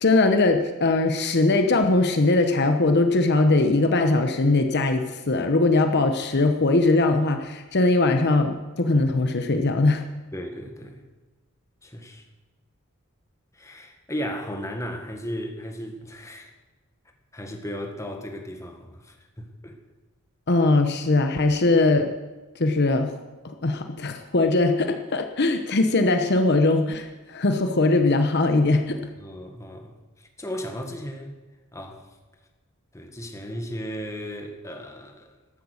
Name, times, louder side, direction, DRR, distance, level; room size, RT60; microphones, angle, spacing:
voice 1, 0.0-10.0 20.5-22.1 22.6-23.2 23.4-29.0, left 2 dB, 50° left, 6 dB, 1.0 m, -21 dB
voice 2, 10.3-11.0 11.8-12.2 13.5-16.5 17.3-19.8 29.2-30.0 30.4-31.3 31.7-32.0 32.9-35.3, equal, 15° left, 4 dB, 1.6 m, -35 dB
14.5 x 12.5 x 6.5 m, 1.2 s
head